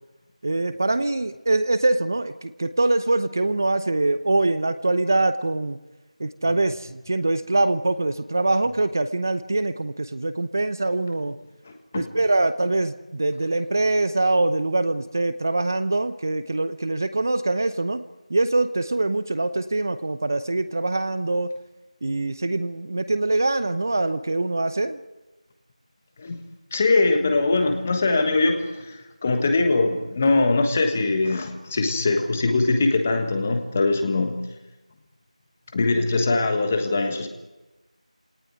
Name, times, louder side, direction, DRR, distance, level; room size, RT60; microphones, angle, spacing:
voice 1, 0.4-5.8 6.2-11.4 11.9-18.0 18.3-21.5 22.0-25.0, right 2 dB, 25° right, 12 dB, 0.9 m, -23 dB
voice 2, 26.7-34.4 35.7-37.3, left 3 dB, 15° left, 6 dB, 1.4 m, -22 dB
26.0 x 18.5 x 9.5 m, 1.1 s
figure-of-eight pair, 175°, 4 cm